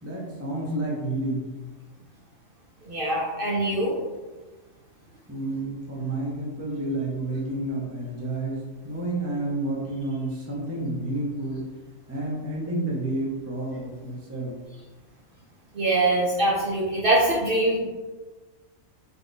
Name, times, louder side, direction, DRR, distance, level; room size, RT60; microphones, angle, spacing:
voice 1, 0.0-1.5 5.3-11.7 12.1-14.5, right 2 dB, 15° right, -3 dB, 0.5 m, -30 dB
voice 2, 2.9-3.9 15.7-17.8, right 2 dB, 50° right, -4 dB, 0.7 m, -23 dB
3.7 x 2.4 x 3.9 m, 1.2 s
omnidirectional pair, 1.4 m